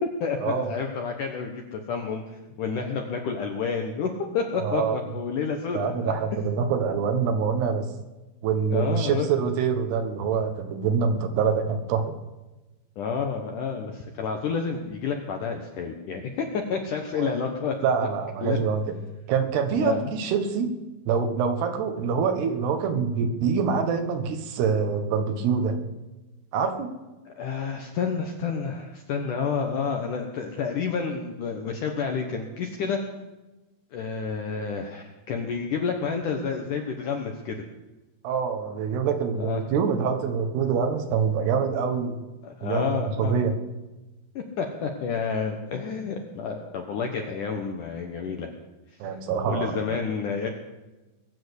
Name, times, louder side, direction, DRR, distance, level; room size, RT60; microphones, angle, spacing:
voice 1, 0.0-6.1 8.7-9.3 13.0-17.8 18.4-18.6 19.8-20.1 27.3-33.0 33.9-37.6 39.4-39.6 42.4-43.4 44.4-48.5 49.5-50.5, left 5 dB, 70° left, 3 dB, 2.0 m, -29 dB
voice 2, 4.6-5.0 5.7-7.9 8.4-12.1 17.1-17.3 17.8-19.0 19.3-20.7 21.1-25.8 26.5-26.9 38.2-42.2 42.6-42.9 43.2-43.6 49.0-49.9, right 6 dB, 70° right, 7 dB, 3.2 m, -25 dB
22.0 x 7.6 x 8.1 m, 1.1 s
omnidirectional pair, 5.2 m